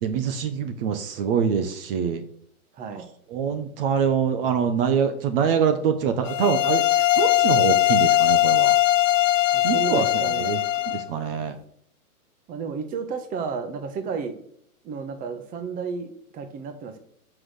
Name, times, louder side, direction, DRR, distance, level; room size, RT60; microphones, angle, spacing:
voice 1, 0.0-2.2 3.3-8.8 9.6-10.6 10.9-11.6, right 7 dB, 40° right, 9 dB, 1.1 m, -25 dB
voice 2, 2.7-3.0 9.5-10.6 12.5-14.3 14.8-17.0, right 5 dB, 20° right, 7 dB, 1.1 m, -32 dB
sound 1, 6.2-11.0, left 14 dB, 60° left, 0.8 m, -20 dB
7.7 x 6.0 x 6.6 m, 0.66 s
hypercardioid pair, 140°, 44 cm